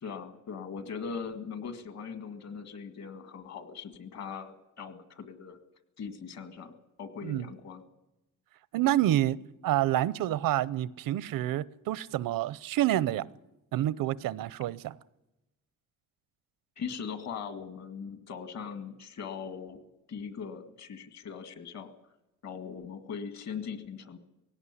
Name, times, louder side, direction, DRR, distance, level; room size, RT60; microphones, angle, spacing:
voice 1, 0.0-5.6 6.0-6.7 7.0-7.8 16.8-19.8 20.1-21.9 22.4-24.2, left 6 dB, 50° left, 2.1 m, -40 dB
voice 2, 8.7-9.4 9.6-13.3 13.7-14.9, right 13 dB, 75° right, 0.7 m, -28 dB
18.5 x 17.0 x 9.8 m
cardioid pair, 175°, 34 cm